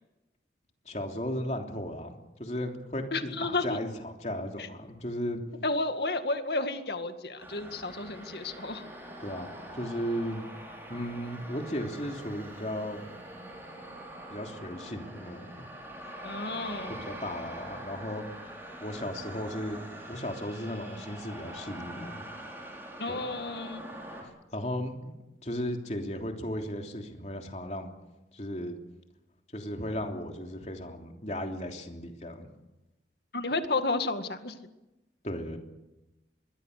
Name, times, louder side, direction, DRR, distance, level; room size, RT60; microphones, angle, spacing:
voice 1, 0.8-2.1 2.4-5.4 9.2-10.4 10.9-13.1 14.3-15.7 17.0-18.2 18.8-19.8 20.1-22.2 23.1-23.3 24.5-25.1 25.4-27.9 28.3-28.8 29.5-32.5 35.2-35.6, equal, 40° left, 3 dB, 3.2 m, -35 dB
voice 2, 3.1-3.8 4.6-4.7 5.6-8.8 16.2-17.0 23.0-23.9 33.3-34.6, left 3 dB, 70° left, 8 dB, 2.1 m, -32 dB
sound 1, 7.4-24.2, right 1 dB, 15° right, 6.1 m, -44 dB
25.5 x 22.0 x 6.7 m, 0.99 s
head